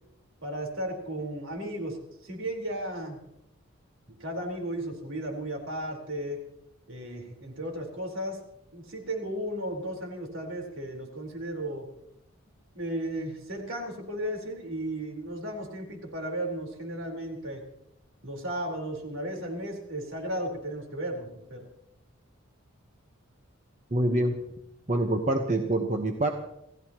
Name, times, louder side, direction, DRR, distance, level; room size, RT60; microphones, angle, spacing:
voice 1, 0.4-3.2 4.2-6.4 6.9-8.4 8.7-11.9 12.7-17.6 18.2-21.7, right 1 dB, 65° right, 1 dB, 4.4 m, -34 dB
voice 2, 23.9-24.4 24.9-26.3, right 1 dB, 35° right, 3 dB, 1.1 m, -25 dB
28.0 x 16.0 x 3.0 m, 0.81 s
head